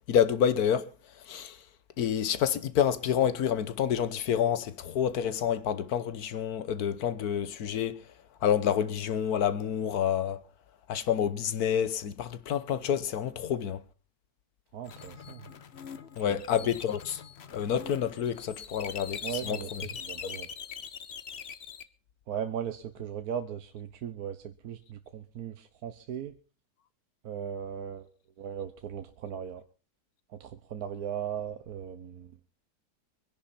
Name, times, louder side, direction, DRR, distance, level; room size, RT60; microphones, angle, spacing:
voice 1, 0.1-0.9 1.3-1.6 2.0-8.0 8.4-10.4 10.9-13.8 16.2-17.2 17.5-19.8, left 9 dB, 60° left, 1.4 m, -28 dB
voice 2, 14.7-15.5 16.3-16.7 19.2-20.5 22.3-26.3 27.2-28.1 28.4-29.6 30.4-32.3, right 8 dB, 65° right, 1.3 m, -38 dB
sound 1, 14.9-21.8, left 7 dB, 45° left, 0.9 m, -42 dB
24.0 x 10.5 x 4.2 m
omnidirectional pair, 1.9 m